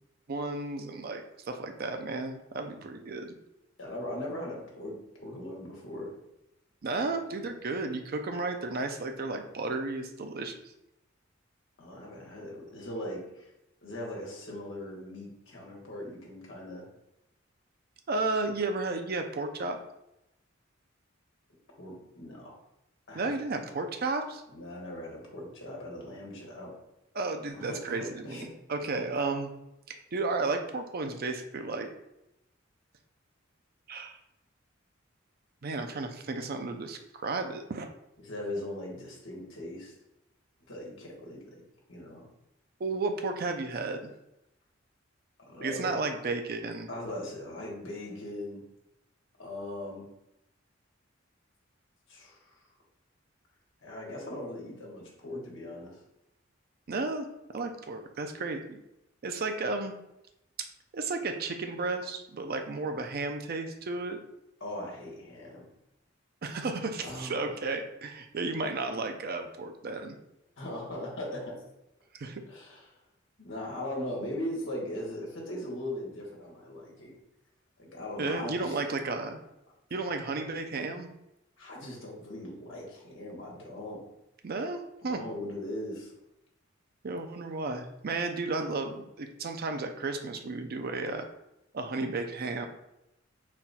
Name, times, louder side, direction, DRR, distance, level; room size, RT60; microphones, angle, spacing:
voice 1, 0.3-3.3 6.8-10.6 18.1-19.8 23.1-24.4 27.1-29.5 29.9-31.9 33.9-34.2 35.6-37.9 42.8-44.1 45.6-46.9 56.9-57.3 57.5-58.8 59.2-59.9 60.9-64.2 66.4-70.2 72.1-72.4 78.2-79.4 79.9-81.1 84.4-85.2 87.0-91.3 91.7-92.7, right 3 dB, 50° right, 6 dB, 0.5 m, -33 dB
voice 2, 3.8-4.9 5.2-6.1 7.0-7.2 11.8-13.5 13.8-16.9 21.8-22.6 23.1-23.3 24.5-26.7 27.5-28.0 28.2-28.5 38.2-39.9 40.7-41.4 41.9-42.2 45.5-45.9 46.9-48.6 49.4-50.0 52.1-52.6 53.8-56.0 64.6-65.6 67.0-67.4 70.6-71.6 72.5-72.9 73.4-77.1 77.8-78.8 81.6-84.0 85.0-86.1, left 1 dB, 70° left, -3 dB, 1.3 m, -39 dB
4.1 x 2.3 x 4.1 m, 0.87 s
head